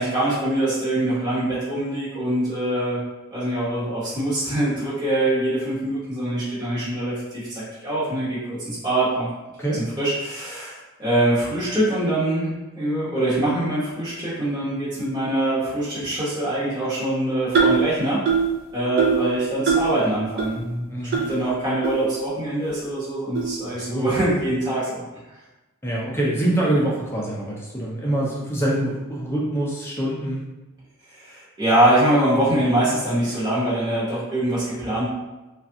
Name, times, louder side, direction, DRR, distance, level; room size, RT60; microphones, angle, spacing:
voice 1, 0.0-3.0 3.3-9.3 9.7-18.2 18.7-20.9 21.3-25.0 31.1-35.1, right 1 dB, 20° right, -10 dB, 1.0 m, -23 dB
sound 1, 17.5-17.9 18.3-18.5 19.0-19.3 19.7-19.9 20.4-20.5 21.1-21.2 21.8-21.9 22.6-22.7 23.3-23.5, right 6 dB, 45° right, 0.5 m, -20 dB
voice 2, 20.9-21.2 23.9-24.1 25.8-30.4, right 1 dB, 10° left, -4 dB, 0.5 m, -25 dB
3.2 x 2.4 x 2.7 m, 1.1 s
head